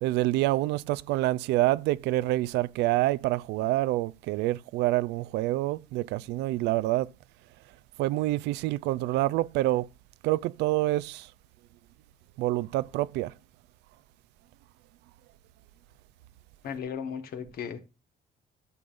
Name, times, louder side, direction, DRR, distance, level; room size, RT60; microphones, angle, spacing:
voice 1, 0.0-7.1 8.0-9.9 10.2-11.3 12.4-13.3, right 17 dB, 85° right, 0.5 m, -27 dB
voice 2, 16.6-17.8, left 7 dB, 65° left, 1.5 m, -35 dB
13.5 x 7.1 x 2.5 m
cardioid pair, 110°, 17 cm